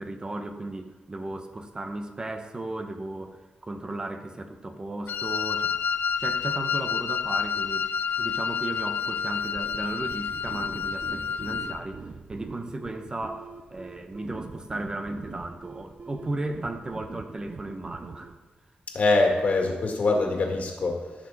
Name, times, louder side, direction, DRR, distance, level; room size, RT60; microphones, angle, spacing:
voice 1, 0.0-5.7 6.2-7.9 8.2-12.0 12.3-18.4, right 2 dB, 25° right, 7 dB, 1.0 m, -35 dB
Wind instrument woodwind instrument, 5.1-11.8, left 6 dB, 75° left, 0.4 m, -29 dB
sound 1, 9.5-18.4, right 4 dB, 50° right, 0.7 m, -43 dB
voice 2, 18.9-21.3, left 3 dB, 55° left, 1 dB, 2.0 m, -24 dB
14.5 x 6.5 x 4.2 m, 1.2 s
wide cardioid pair, 100°, 3 cm